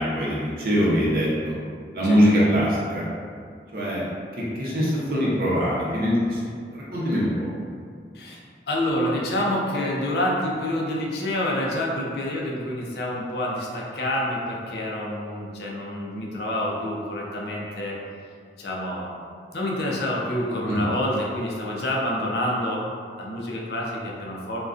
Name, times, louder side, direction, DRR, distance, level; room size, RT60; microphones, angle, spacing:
voice 1, 0.0-1.6 1.9-3.0 3.7-4.0 4.5-6.4 6.7-7.5 20.7-20.8, equal, 55° right, -6 dB, 0.6 m, -22 dB
voice 2, 8.1-18.0 18.6-19.1 19.5-22.8 23.2-24.6, left 1 dB, 65° left, -3 dB, 0.4 m, -27 dB
2.4 x 2.2 x 2.4 m, 2.2 s
head